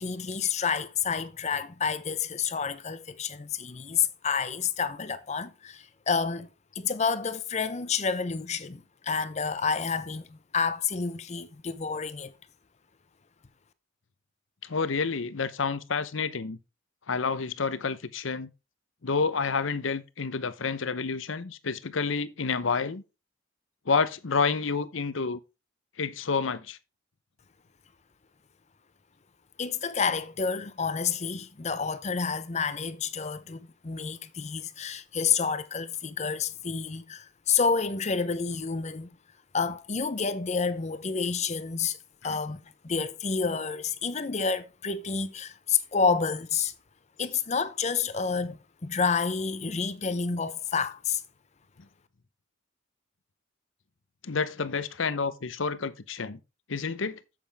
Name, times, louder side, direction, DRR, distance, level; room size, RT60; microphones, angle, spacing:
voice 1, 0.0-6.5 6.8-12.3 29.6-39.1 39.5-42.0 42.2-46.7 47.2-51.2, left 5 dB, 35° left, 0.7 m, -29 dB
voice 2, 14.6-16.6 17.1-18.5 19.0-23.0 23.9-25.4 26.0-26.8 42.3-42.4 54.2-56.4 56.7-57.2, left 5 dB, 75° left, 0.8 m, -29 dB
8.7 x 7.6 x 3.4 m
head